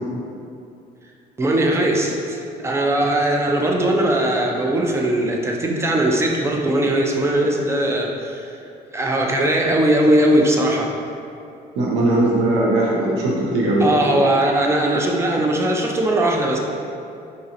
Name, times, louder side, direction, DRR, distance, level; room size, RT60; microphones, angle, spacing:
voice 1, 1.4-8.5 8.9-10.9 13.8-16.6, right 1 dB, 15° right, 0 dB, 0.4 m, -19 dB
voice 2, 11.8-13.9, right 2 dB, 85° right, -4 dB, 0.7 m, -19 dB
3.9 x 2.8 x 2.5 m, 2.6 s
cardioid pair, 110°, 17 cm